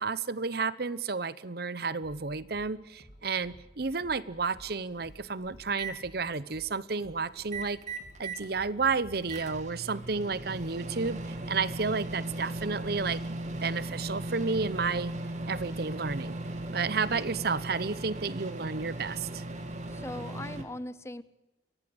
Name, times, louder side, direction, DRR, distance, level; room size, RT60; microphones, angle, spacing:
voice 1, 0.0-7.8 8.2-13.2 13.6-15.1 15.5-16.4 16.7-19.4, right 4 dB, 55° right, 18 dB, 0.8 m, -31 dB
sound 1, 2.0-18.0, equal, 60° left, 4.2 m, -55 dB
Microwave oven, 5.0-5.9 7.4-8.5 8.9-20.6, right 2 dB, 40° right, 2.7 m, -37 dB
voice 2, 19.9-21.2, left 1 dB, 15° left, 17 dB, 0.7 m, -39 dB
23.5 x 17.5 x 7.9 m, 0.98 s
head